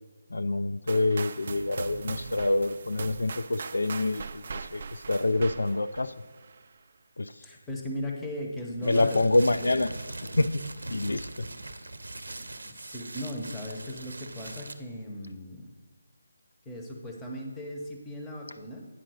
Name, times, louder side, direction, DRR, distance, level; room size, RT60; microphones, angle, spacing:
voice 1, 0.3-6.1 7.2-7.3 8.8-9.9 10.4-10.5 10.9-11.5, left 2 dB, 85° left, 12 dB, 0.3 m, -26 dB
sound 1, 0.9-6.7, right 5 dB, 45° right, 0.3 m, -40 dB
voice 2, 7.4-9.8 12.6-15.7 16.7-18.9, left 1 dB, 10° left, -1 dB, 0.7 m, -37 dB
sound 2, 8.8-14.7, right 2 dB, 90° right, 0.6 m, -40 dB
9.1 x 3.8 x 6.2 m, 1.4 s
figure-of-eight pair, 165°, 0 cm